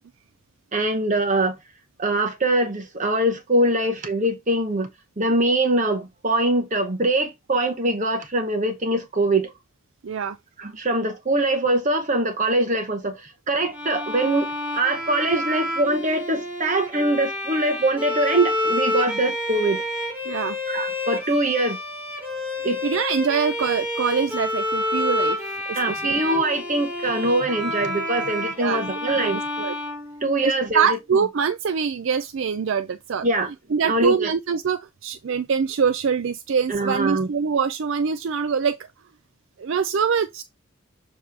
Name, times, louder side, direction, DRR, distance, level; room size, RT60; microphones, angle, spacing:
voice 1, 0.7-1.6 2.0-4.9 5.2-9.5 10.6-14.5 14.7-19.8 20.7-21.8 22.6-22.8 25.8-29.4 30.2-31.0 33.2-33.5 33.8-34.3 36.7-37.3, right 2 dB, 35° right, 0.9 m, -23 dB
voice 2, 10.0-10.4 20.3-20.6 22.8-25.4 25.7-26.1 28.6-28.8 29.2-29.7 30.4-33.3 33.7-38.8 39.6-40.4, right 6 dB, 55° right, 0.4 m, -24 dB
Bowed string instrument, 13.7-30.7, left 1 dB, 10° right, 2.6 m, -29 dB
7.3 x 3.0 x 4.6 m
head